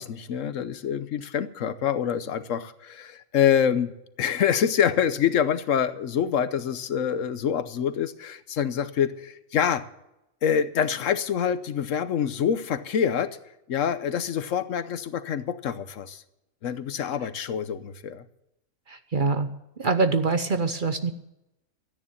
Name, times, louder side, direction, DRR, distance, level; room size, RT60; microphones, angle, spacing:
voice 1, 0.0-3.9 4.2-9.9 10.4-13.4 13.7-16.2 16.6-18.2, left 8 dB, 70° left, 13 dB, 1.1 m, -26 dB
voice 2, 18.9-19.5 19.8-21.1, right 4 dB, 45° right, 9 dB, 0.9 m, -24 dB
13.5 x 9.7 x 7.0 m, 0.89 s
omnidirectional pair, 1.4 m